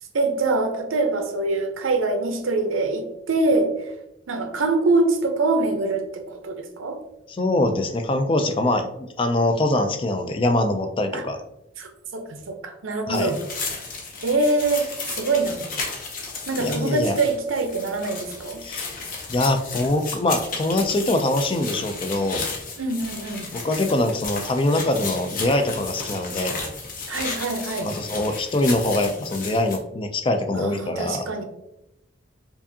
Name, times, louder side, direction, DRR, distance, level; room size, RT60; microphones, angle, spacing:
voice 1, 0.1-3.9 4.3-7.0 11.1-11.2 11.8-13.4 14.2-15.7 16.5-18.6 22.8-23.5 27.1-27.9 30.5-31.4, right 3 dB, 90° right, 5 dB, 0.6 m, -24 dB
voice 2, 7.3-11.4 13.1-13.3 16.6-17.2 18.6-18.9 19.3-22.4 23.5-26.6 27.8-31.3, left 1 dB, 25° left, 6 dB, 0.3 m, -23 dB
sound 1, 13.1-29.8, left 4 dB, 45° left, 0.7 m, -34 dB
4.7 x 2.6 x 2.7 m, 0.85 s
head